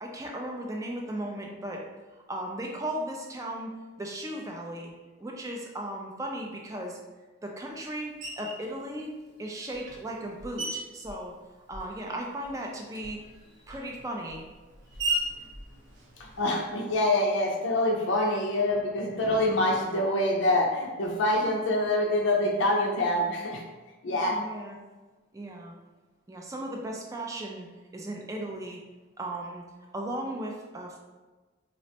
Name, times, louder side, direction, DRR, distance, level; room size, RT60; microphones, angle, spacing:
voice 1, 0.0-1.8 2.3-4.9 5.2-7.0 7.4-9.1 9.4-11.3 11.7-13.2 13.7-14.4 24.1-24.8 25.3-25.7 26.3-27.7 27.9-28.8 29.2-29.6 29.9-31.0, right 1 dB, 15° right, 0 dB, 0.3 m, -36 dB
Screech, 8.2-8.7 9.4-12.1 12.4-16.7, right 1 dB, 65° right, 0.8 m, -37 dB
voice 2, 16.2-23.6 24.0-24.4, left 1 dB, 65° left, -1 dB, 0.4 m, -25 dB
4.1 x 2.1 x 2.8 m, 1.3 s
head